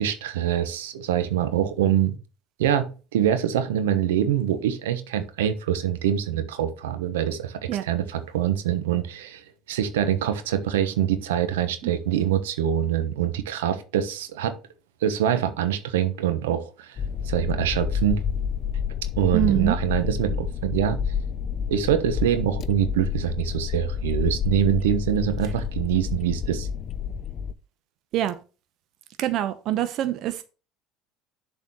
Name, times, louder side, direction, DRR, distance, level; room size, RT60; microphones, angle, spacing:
voice 1, 0.0-2.1 2.6-14.5 15.0-17.0 17.2-18.2 19.2-21.0 21.7-26.7, right 10 dB, 85° right, 1.0 m, -24 dB
sound 1, 17.0-27.5, left 7 dB, 45° left, 0.6 m, -29 dB
voice 2, 19.3-19.8 28.1-28.3 29.2-30.4, right 13 dB, 60° right, 0.8 m, -24 dB
7.0 x 4.1 x 6.3 m
hypercardioid pair, 80°, 0 cm